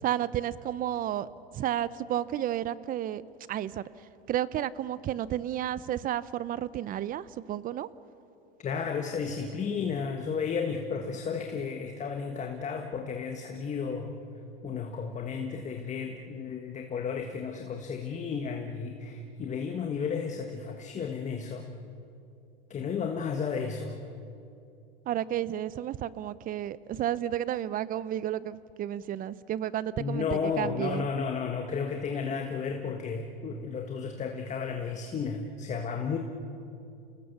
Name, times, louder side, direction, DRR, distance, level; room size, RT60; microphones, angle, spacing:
voice 1, 0.0-3.2 3.5-7.9 25.1-31.1, right 11 dB, 30° right, 18 dB, 0.7 m, -32 dB
voice 2, 8.6-14.2 14.6-21.7 22.7-24.0 30.0-36.2, left 5 dB, 25° left, 4 dB, 1.5 m, -33 dB
29.0 x 19.5 x 7.0 m, 2.7 s
hypercardioid pair, 110°, 30 cm